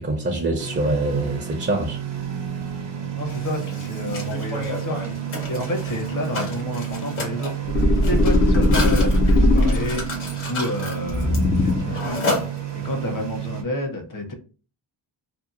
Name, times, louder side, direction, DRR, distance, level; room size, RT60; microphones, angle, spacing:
voice 1, 0.0-2.0 8.1-8.2, right 2 dB, 25° right, 0.5 m, -24 dB
sound 1, 0.6-13.6, right 10 dB, 60° right, 0.7 m, -31 dB
Mechanisms, 3.2-13.0, left 2 dB, 85° left, 1.2 m, -32 dB
voice 2, 3.2-5.1 5.5-7.5 8.1-10.2 10.5-12.4 12.8-14.3, left 1 dB, 40° left, 0.8 m, -30 dB
sound 2, 7.7-10.2 11.1-12.1, left 1 dB, 25° left, 0.4 m, -19 dB
2.8 x 2.2 x 2.5 m
wide cardioid pair, 95°, 47 cm